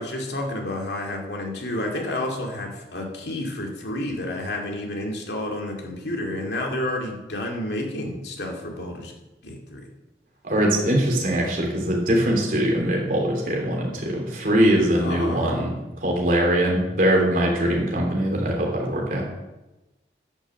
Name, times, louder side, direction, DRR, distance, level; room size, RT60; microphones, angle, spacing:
voice 1, 0.0-9.1 9.4-9.8 14.9-15.6, left 1 dB, 75° left, 1 dB, 2.3 m, -30 dB
voice 2, 10.4-19.2, right 1 dB, 50° right, -1 dB, 3.3 m, -22 dB
10.5 x 6.5 x 7.4 m, 1.0 s
head